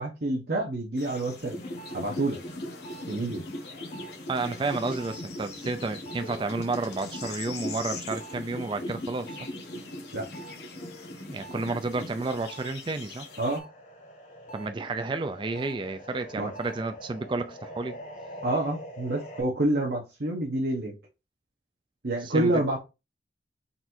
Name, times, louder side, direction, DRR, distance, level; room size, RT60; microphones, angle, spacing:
voice 1, 0.0-1.6 1.9-2.4 3.1-3.4 10.1-10.2 13.4-13.6 16.4-16.5 18.4-20.9 22.0-22.8, right 1 dB, 60° right, 1.0 m, -27 dB
sound 1, 1.0-13.6, left 5 dB, 65° left, 1.0 m, -45 dB
sound 2, 1.4-12.7 13.1-19.4, equal, 45° left, 0.9 m, -41 dB
voice 2, 4.3-9.5 11.3-13.3 14.5-18.0 22.2-22.5, right 3 dB, 25° right, 0.3 m, -31 dB
4.1 x 2.6 x 4.3 m
head